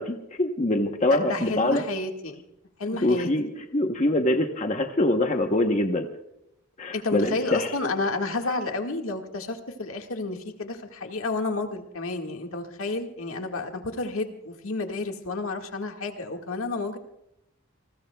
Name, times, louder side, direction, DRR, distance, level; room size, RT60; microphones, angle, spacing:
voice 1, 0.0-1.8 2.9-6.1 6.8-7.7, left 1 dB, 35° left, 4 dB, 0.9 m, -24 dB
voice 2, 1.1-2.4 2.8-3.3 6.9-17.0, left 3 dB, 75° left, 4 dB, 1.7 m, -31 dB
28.5 x 20.5 x 2.3 m, 0.82 s
head